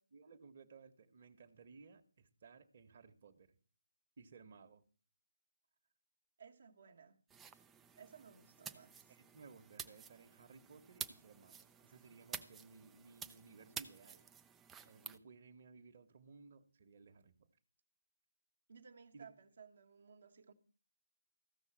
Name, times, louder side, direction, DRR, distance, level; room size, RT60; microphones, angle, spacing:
voice 1, 0.1-3.6 4.2-4.8 9.1-14.2 14.8-17.5 19.1-19.3, right 4 dB, 40° right, 1.5 m, -59 dB
voice 2, 6.4-7.2 7.9-9.1 18.7-20.5, right 6 dB, 55° right, 1.4 m, -59 dB
sound 1, 7.3-15.2, right 7 dB, 10° right, 0.5 m, -51 dB
15.0 x 6.3 x 7.5 m
figure-of-eight pair, 155°, 0 cm